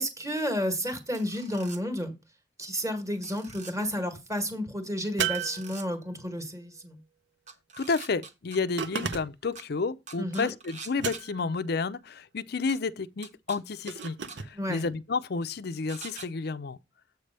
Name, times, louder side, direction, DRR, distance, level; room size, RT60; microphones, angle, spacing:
voice 1, 0.0-2.2 2.6-7.0 10.2-10.5 14.5-14.8, equal, 15° right, 1.7 m, -31 dB
sound 1, 1.1-1.8 3.2-3.7 5.3-5.9 7.5-8.6 9.6-9.7 10.1-11.2 12.7-12.8 13.2-13.6 14.0-14.4 15.9-16.3, right 5 dB, 40° right, 1.2 m, -44 dB
sound 2, 5.2-6.3 8.8-9.6 11.0-11.6 13.9-14.5, right 7 dB, 70° right, 0.8 m, -33 dB
voice 2, 7.8-16.8, left 4 dB, 60° left, 0.5 m, -31 dB
8.2 x 3.3 x 6.6 m
head